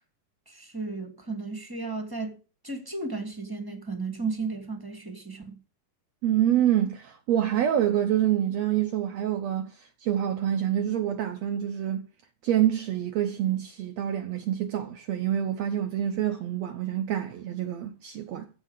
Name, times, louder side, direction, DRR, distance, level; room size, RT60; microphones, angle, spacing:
voice 1, 0.5-5.6, right 3 dB, 10° right, 1.5 m, -34 dB
voice 2, 6.2-12.1 12.4-18.5, right 11 dB, 70° right, 1.6 m, -26 dB
15.0 x 5.6 x 8.1 m
omnidirectional pair, 4.0 m